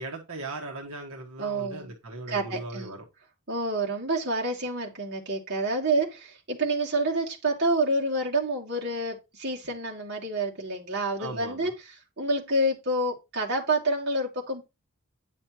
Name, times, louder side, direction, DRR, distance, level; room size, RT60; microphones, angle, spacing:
voice 1, 0.0-3.0 11.2-11.7, right 2 dB, 75° right, 1.5 m, -38 dB
voice 2, 1.4-1.9 2.3-3.0 3.5-14.6, right 2 dB, 50° right, 2.3 m, -28 dB
9.9 x 6.4 x 3.0 m
head